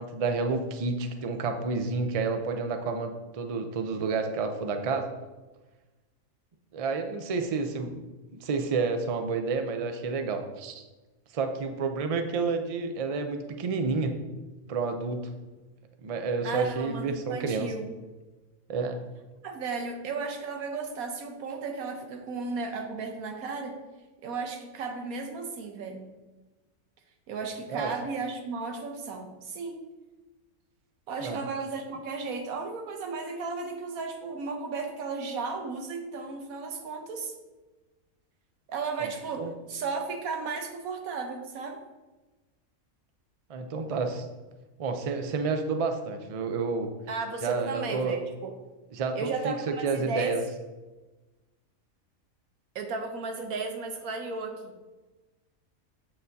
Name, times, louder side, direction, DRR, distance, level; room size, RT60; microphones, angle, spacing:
voice 1, 0.0-5.1 6.7-8.0 8.3-10.8 11.3-14.1 14.7-15.3 16.0-17.7 18.7-19.0 27.7-27.9 31.2-31.4 39.0-39.1 39.4-39.5 43.5-44.2 44.8-46.9 47.4-48.1 48.9-50.4, right 4 dB, 60° right, 6 dB, 0.3 m, -30 dB
voice 2, 16.4-17.9 19.4-23.8 24.2-26.1 27.3-29.8 31.1-37.3 38.7-41.8 47.1-48.6 49.1-50.4 52.7-54.7, right 4 dB, 80° right, 5 dB, 1.3 m, -34 dB
7.6 x 6.5 x 2.7 m, 1.2 s
omnidirectional pair, 1.5 m